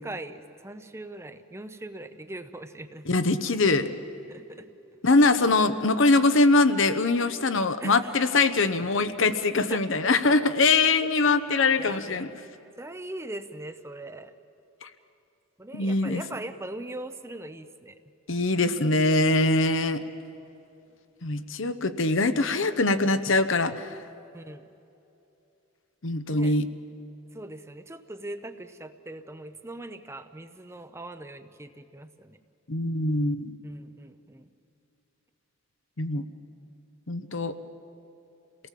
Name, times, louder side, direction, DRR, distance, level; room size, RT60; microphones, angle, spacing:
voice 1, 0.0-3.1 4.3-4.7 7.8-8.3 9.7-10.1 10.4-10.5 11.0-11.1 11.8-12.3 12.8-14.3 15.6-18.0 24.3-24.7 26.3-26.5 27.3-32.4 33.6-34.5, right 1 dB, 15° right, 10 dB, 0.7 m, -40 dB
voice 2, 3.1-3.9 5.0-12.3 14.8-14.9 15.7-16.2 18.3-20.0 21.2-23.9 26.0-26.7 32.7-33.5 36.0-36.2 37.1-37.5, left 3 dB, 65° left, 10 dB, 0.9 m, -23 dB
28.0 x 18.5 x 7.5 m, 2.8 s
head